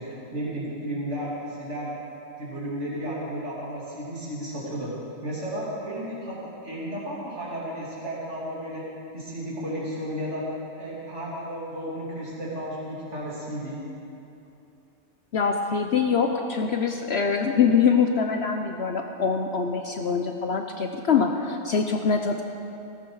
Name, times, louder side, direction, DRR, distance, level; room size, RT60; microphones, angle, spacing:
voice 1, 0.0-2.0 2.4-4.9 5.2-8.8 9.1-10.4 10.7-13.8, right 1 dB, 60° right, -7 dB, 3.3 m, -33 dB
voice 2, 15.3-22.4, left 6 dB, 60° left, 4 dB, 0.9 m, -24 dB
17.0 x 14.5 x 4.8 m, 2.8 s
omnidirectional pair, 1.3 m